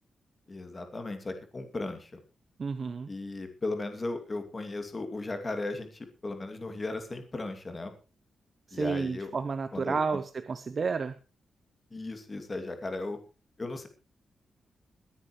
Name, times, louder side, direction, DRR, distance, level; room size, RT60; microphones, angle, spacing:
voice 1, 0.5-2.1 3.1-7.9 8.7-9.3 9.7-10.2 11.9-13.2 13.6-13.9, left 2 dB, 25° left, 6 dB, 2.5 m, -36 dB
voice 2, 2.6-3.1 8.7-11.1, right 5 dB, 40° right, 11 dB, 0.8 m, -31 dB
22.0 x 10.0 x 3.2 m, 0.31 s
wide cardioid pair, 160°, 0 cm